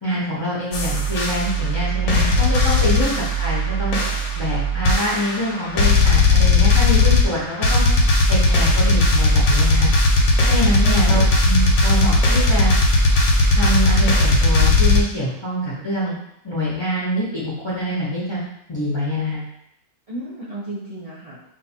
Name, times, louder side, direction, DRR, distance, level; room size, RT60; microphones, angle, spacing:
voice 1, 0.0-4.0 4.3-7.8 8.3-9.9 10.5-12.7 13.5-16.2 16.4-18.4 18.7-19.4, equal, 35° left, -7 dB, 0.5 m, -25 dB
sound 1, 0.7-15.0, left 2 dB, 80° left, 1.1 m, -17 dB
voice 2, 10.6-11.0 20.1-21.5, right 2 dB, 75° right, -7 dB, 0.3 m, -33 dB
2.5 x 2.4 x 4.1 m, 0.76 s
omnidirectional pair, 1.5 m